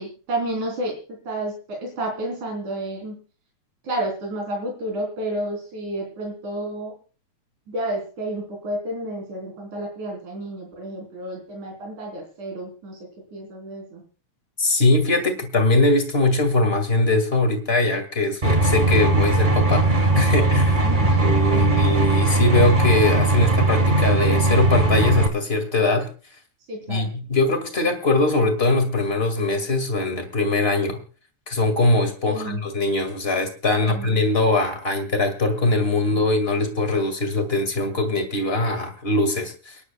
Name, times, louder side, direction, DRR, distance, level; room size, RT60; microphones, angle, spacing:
voice 1, 0.0-3.1 3.8-7.0 7.7-14.0 20.8-21.8 26.7-27.1 32.3-32.6 33.7-34.2 36.1-36.2, right 1 dB, 80° right, 0 dB, 5.1 m, -31 dB
voice 2, 14.6-20.8 21.2-26.1 26.9-31.0 31.5-39.8, left 2 dB, 25° left, 6 dB, 1.9 m, -21 dB
sound 1, 18.4-25.3, right 2 dB, 25° right, 1.1 m, -19 dB
30.0 x 10.5 x 2.3 m, 0.36 s
omnidirectional pair, 3.4 m